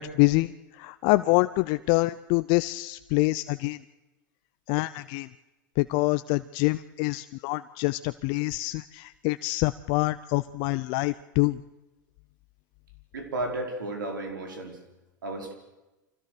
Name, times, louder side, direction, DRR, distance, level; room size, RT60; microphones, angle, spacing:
voice 1, 0.0-3.8 4.7-5.3 5.8-11.6, left 21 dB, 55° left, 13 dB, 0.6 m, -26 dB
voice 2, 13.1-14.8 15.2-15.5, right 2 dB, 90° right, 4 dB, 4.8 m, -33 dB
25.0 x 17.0 x 6.7 m, 1.0 s
hypercardioid pair, 105°, 11 cm